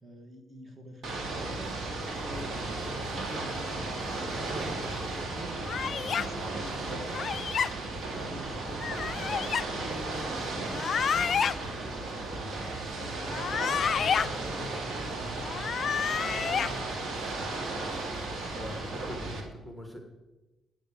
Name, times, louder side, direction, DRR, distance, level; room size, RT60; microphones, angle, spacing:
voice 1, 0.0-1.8 2.2-5.5 6.2-7.5 8.0-11.3 11.8-16.9 17.5-17.8, right 1 dB, 25° right, 3 dB, 1.9 m, -45 dB
Ocean / Boat Water vehicle, 1.0-19.4, right 2 dB, 55° right, 2.1 m, -35 dB
sound 1, 5.7-6.3 7.1-7.7 8.8-9.6 10.7-11.5 13.2-14.3 15.4-16.7, left 7 dB, 50° left, 0.3 m, -29 dB
voice 2, 18.5-20.0, equal, ahead, 3 dB, 1.7 m, -43 dB
9.3 x 6.8 x 7.0 m, 1.1 s
cardioid pair, 90°, 0 cm